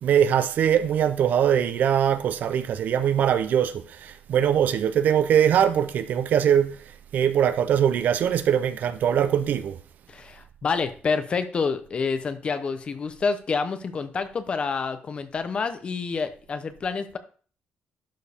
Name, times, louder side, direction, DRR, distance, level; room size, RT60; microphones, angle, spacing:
voice 1, 0.0-6.8 7.1-9.8, right 9 dB, 55° right, 0.5 m, -22 dB
voice 2, 10.1-17.2, left 5 dB, 30° left, 0.7 m, -28 dB
11.5 x 4.5 x 3.5 m
cardioid pair, 165°, 3 cm